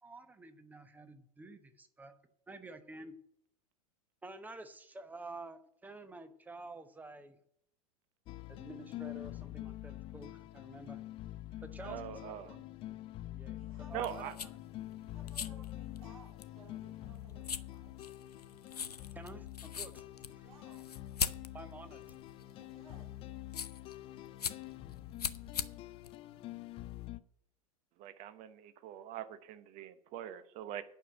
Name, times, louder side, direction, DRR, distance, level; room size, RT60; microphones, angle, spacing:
voice 1, 0.0-2.1 2.5-3.1 4.2-7.4 8.5-11.0 11.6-13.0 13.4-13.6 13.9-14.5 19.1-20.0 20.3-20.5 21.5-22.2 26.3-26.4, right 2 dB, 10° right, 0.9 m, -50 dB
sound 1, 8.3-27.2, left 15 dB, 25° left, 0.4 m, -46 dB
voice 2, 11.8-12.6 13.9-14.3 28.0-30.8, right 11 dB, 40° right, 1.0 m, -43 dB
voice 3, 13.5-14.4 15.1-17.9 20.4-20.9 22.4-23.1, right 4 dB, 65° right, 3.4 m, -60 dB
sound 2, 13.9-27.1, left 7 dB, 80° left, 0.6 m, -43 dB
9.1 x 6.6 x 7.5 m
figure-of-eight pair, 90°, 20 cm